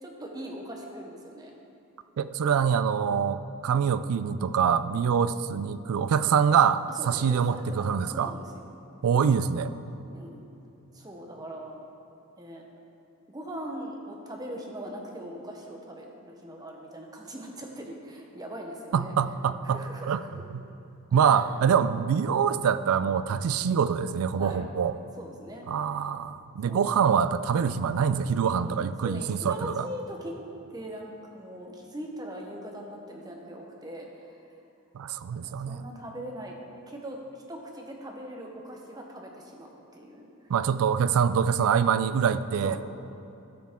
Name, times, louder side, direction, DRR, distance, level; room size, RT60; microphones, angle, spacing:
voice 1, 0.0-1.5 6.9-8.5 10.1-10.4 10.9-11.8 12.4-12.6 13.3-19.1 19.6-20.3 21.1-21.7 24.4-24.7 25.2-25.7 26.7-27.0 28.5-28.7 29.0-30.4 30.7-34.4 35.4-36.6 36.9-40.3 42.6-42.8, right 1 dB, 15° right, 1 dB, 0.8 m, -41 dB
voice 2, 2.2-8.3 9.0-9.7 18.9-20.2 20.5-20.6 21.1-24.9 25.7-29.9 34.9-35.8 40.5-42.8, right 7 dB, 80° right, 13 dB, 0.3 m, -25 dB
12.5 x 6.0 x 3.6 m, 2.8 s
head